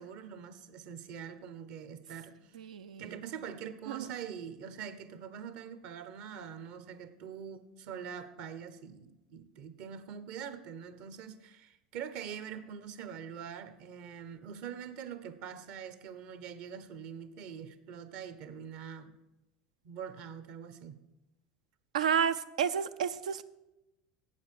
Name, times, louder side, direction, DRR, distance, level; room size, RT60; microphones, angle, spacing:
voice 1, 0.0-2.6 3.0-19.1 19.8-21.0, right 7 dB, 65° right, 12 dB, 0.9 m, -44 dB
voice 2, 2.5-3.1 3.9-4.1 21.9-23.4, right 7 dB, 85° right, 11 dB, 0.4 m, -31 dB
8.5 x 7.1 x 6.5 m, 0.96 s
hypercardioid pair, 85°, 4 cm